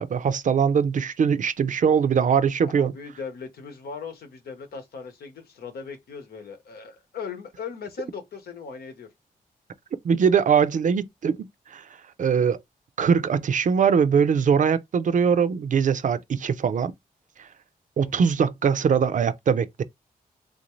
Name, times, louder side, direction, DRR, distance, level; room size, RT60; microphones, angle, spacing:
voice 1, 0.0-2.9 10.0-11.4 11.7-11.9 12.2-12.6 13.0-16.9 17.4-17.5 18.0-19.8, right 6 dB, 55° right, 0.5 m, -22 dB
voice 2, 2.6-9.1 18.0-18.2, left 5 dB, 85° left, 1.0 m, -38 dB
3.5 x 2.6 x 3.1 m
cardioid pair, 85°, 15 cm